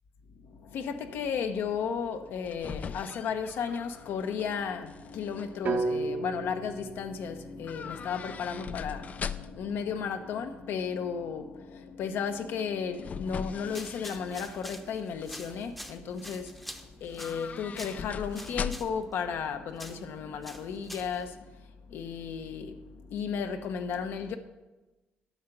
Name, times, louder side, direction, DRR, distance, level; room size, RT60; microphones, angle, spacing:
voice 1, 0.4-21.6 21.9-24.4, left 6 dB, 75° left, 0.8 m, -34 dB
sound 1, 2.2-4.6 4.9-5.4 7.6-9.8 12.5-14.7 15.1-15.6 17.0-19.1 19.4-19.5, left 6 dB, 40° left, 0.3 m, -40 dB
sound 2, 5.7-9.7, right 3 dB, 55° right, 0.8 m, -36 dB
sound 3, 13.6-21.3, equal, 5° left, 0.7 m, -47 dB
10.0 x 6.6 x 5.9 m
cardioid pair, 125°, 4 cm